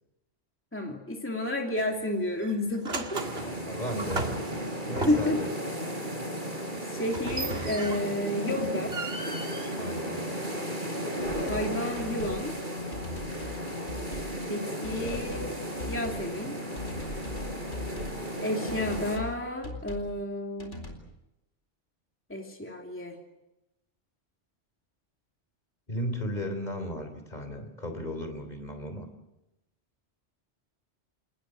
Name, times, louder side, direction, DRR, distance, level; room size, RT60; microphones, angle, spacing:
voice 1, 0.7-3.2 5.1-5.4 6.8-8.9 11.5-12.5 14.5-15.5 15.9-16.6 18.4-20.8 22.3-23.2, left 1 dB, 10° left, 1 dB, 2.8 m, -31 dB
sound 1, 1.8-2.0 2.4-5.5 7.1-8.3 8.6-10.5, right 3 dB, 60° right, 2.3 m, -36 dB
sound 2, 3.1-19.2, equal, 45° right, 4.7 m, -35 dB
voice 2, 3.4-4.3 4.8-5.5 9.8-10.2 14.9-15.2 25.9-29.1, equal, 35° left, 7 dB, 3.6 m, -35 dB
sound 3, 11.2-11.7 12.0-12.4 12.9-13.6 13.9-14.4 14.8-15.5 15.8-16.3 16.8-18.2 18.7-19.4 19.6-20.1 20.6-21.0, left 2 dB, 80° left, 4.5 m, -40 dB
28.5 x 19.5 x 7.8 m, 0.91 s
omnidirectional pair, 1.2 m